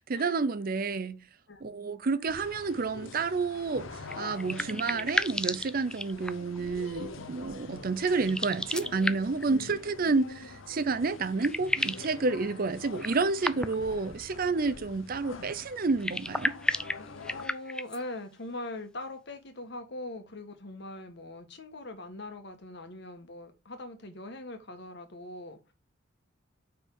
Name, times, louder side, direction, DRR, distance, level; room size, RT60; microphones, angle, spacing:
voice 1, 0.1-1.2 1.6-3.9 4.2-16.5, right 4 dB, 45° right, 0.5 m, -30 dB
sound 1, 2.3-17.5, left 3 dB, 90° left, 0.8 m, -45 dB
sound 2, 4.0-6.6 8.2-9.5 10.8-10.9 11.2-12.1 13.0-13.9 15.9-18.0, left 1 dB, 5° left, 0.3 m, -33 dB
voice 2, 9.5-9.8 17.3-25.7, left 2 dB, 60° left, 1.3 m, -42 dB
5.4 x 4.7 x 5.2 m
head